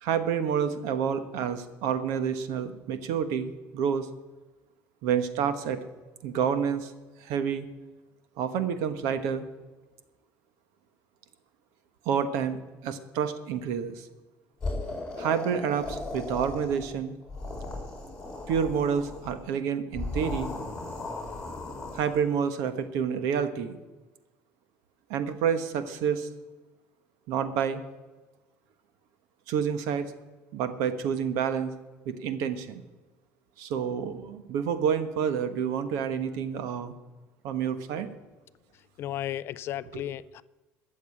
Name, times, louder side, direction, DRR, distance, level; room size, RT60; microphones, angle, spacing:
voice 1, 0.0-4.1 5.0-5.8 6.2-6.9 7.2-7.7 8.4-9.4 12.0-14.1 15.2-17.1 18.5-20.5 21.9-23.8 25.1-26.3 27.3-27.8 29.5-30.1 30.5-31.7 32.0-32.8 33.6-36.9 37.4-38.1 39.9-40.0, right 7 dB, 75° right, 1.2 m, -28 dB
sound 1, 14.6-16.9 17.2-19.3 19.9-22.2, left 2 dB, 10° left, 4.2 m, -36 dB
voice 2, 39.0-40.4, left 12 dB, 45° left, 0.4 m, -34 dB
13.5 x 7.2 x 8.4 m
cardioid pair, 150°, 6 cm